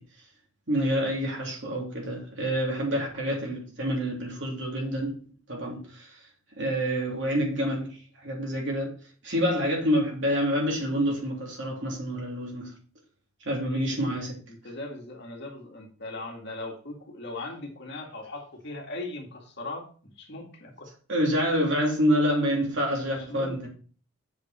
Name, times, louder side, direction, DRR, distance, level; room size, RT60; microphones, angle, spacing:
voice 1, 0.7-5.2 5.5-6.1 6.6-8.9 9.2-12.7 13.4-14.4 21.1-23.7, equal, 60° right, 3.3 m, -27 dB
voice 2, 13.6-14.0 14.5-20.9 21.4-21.5 23.1-23.7, left 2 dB, 55° left, 2.1 m, -39 dB
8.2 x 7.3 x 4.3 m
head